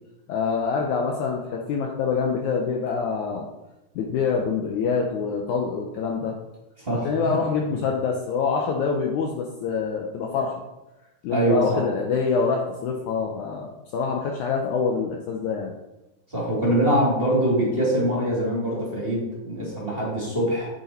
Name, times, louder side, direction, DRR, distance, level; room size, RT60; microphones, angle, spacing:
voice 1, 0.3-3.5 4.0-6.4 7.0-10.6 11.2-15.7, left 5 dB, 75° left, 0 dB, 1.9 m, -25 dB
voice 2, 6.8-7.3 11.3-11.8 16.3-20.7, right 1 dB, 20° right, -6 dB, 2.1 m, -23 dB
7.9 x 6.8 x 4.4 m, 0.99 s
omnidirectional pair, 4.0 m